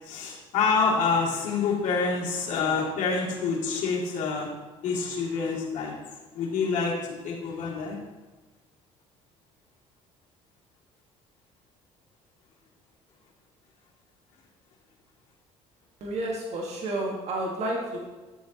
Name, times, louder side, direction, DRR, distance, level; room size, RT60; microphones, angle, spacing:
voice 1, 0.0-4.5 4.8-5.9 6.3-8.0, left 4 dB, 70° left, -4 dB, 2.5 m, -27 dB
voice 2, 16.0-18.0, right 1 dB, 55° right, -1 dB, 1.7 m, -30 dB
10.0 x 7.3 x 3.0 m, 1.2 s
supercardioid pair, 80°, 13 cm